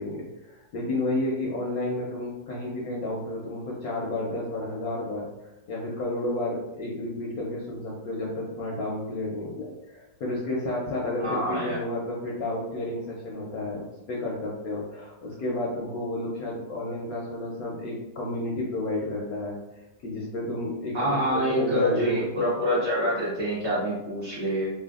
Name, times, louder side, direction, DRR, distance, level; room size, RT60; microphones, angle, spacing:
voice 1, 0.0-19.6 20.0-22.2, left 2 dB, 70° left, -3 dB, 0.9 m, -31 dB
voice 2, 11.2-11.8 20.9-24.7, equal, 45° right, -8 dB, 1.0 m, -26 dB
3.3 x 2.1 x 2.3 m, 0.93 s
omnidirectional pair, 1.9 m